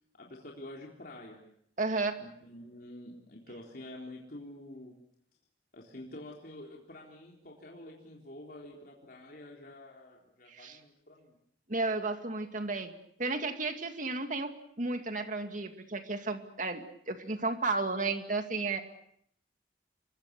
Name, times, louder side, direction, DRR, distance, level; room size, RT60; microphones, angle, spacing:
voice 1, 0.2-1.4 2.2-5.0 5.7-11.4, left 1 dB, 50° left, -2 dB, 3.9 m, -48 dB
voice 2, 1.8-2.2 10.5-10.8 11.7-12.9 13.2-18.8, right 3 dB, 45° right, 6 dB, 2.3 m, -33 dB
27.5 x 23.5 x 6.8 m, 0.69 s
head